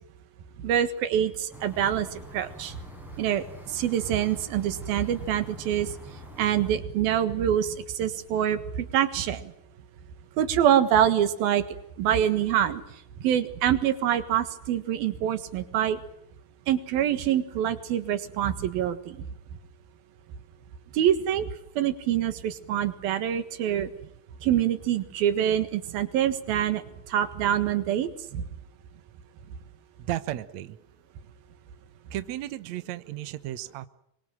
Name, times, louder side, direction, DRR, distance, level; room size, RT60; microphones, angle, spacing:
voice 1, 0.6-2.8 3.2-5.9 6.4-9.5 10.4-11.7 12.0-12.8 13.2-16.0 16.7-19.2 20.9-21.5 21.8-23.9 24.4-26.8 27.1-28.4, right 10 dB, 80° right, 12 dB, 3.4 m, -25 dB
sound 1, 1.5-6.7, left 1 dB, ahead, 7.5 m, -44 dB
voice 2, 30.0-30.8 32.1-33.9, right 14 dB, 65° right, 13 dB, 1.9 m, -34 dB
25.5 x 23.5 x 7.6 m, 0.76 s
omnidirectional pair, 4.2 m